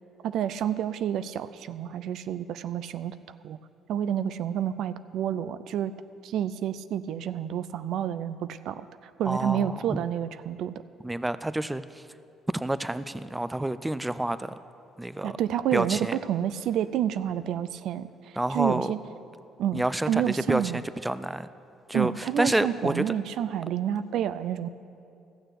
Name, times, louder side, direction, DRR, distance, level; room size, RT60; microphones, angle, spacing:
voice 1, 0.2-3.2 3.4-3.6 3.9-5.9 6.2-10.7 15.2-19.0 19.6-20.8 21.9-24.7, right 10 dB, 70° right, 14 dB, 0.4 m, -29 dB
voice 2, 9.3-10.0 11.0-12.0 12.5-14.5 15.0-15.4 15.7-16.2 18.4-18.9 19.7-21.5 21.9-23.0, right 1 dB, 10° right, 14 dB, 0.4 m, -28 dB
14.5 x 6.6 x 7.9 m, 2.6 s
supercardioid pair, 80°, 0 cm